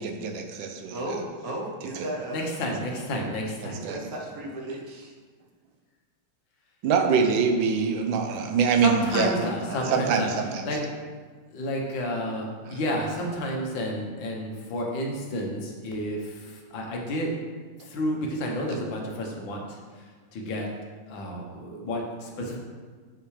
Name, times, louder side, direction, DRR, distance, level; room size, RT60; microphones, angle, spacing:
voice 1, 0.0-1.0 1.9-2.0 3.6-4.0 6.8-9.3 9.9-10.6 12.7-12.8, right 6 dB, 85° right, 4 dB, 1.5 m, -24 dB
voice 2, 0.9-2.5 3.7-5.1 9.4-10.2, right 1 dB, 55° right, -2 dB, 1.4 m, -35 dB
voice 3, 2.3-3.8 8.8-10.3 10.7-10.8 11.5-17.3 17.9-19.8 20.3-20.7 21.1-22.6, left 1 dB, 80° left, 0 dB, 1.8 m, -30 dB
6.8 x 5.8 x 3.2 m, 1.5 s
omnidirectional pair, 2.0 m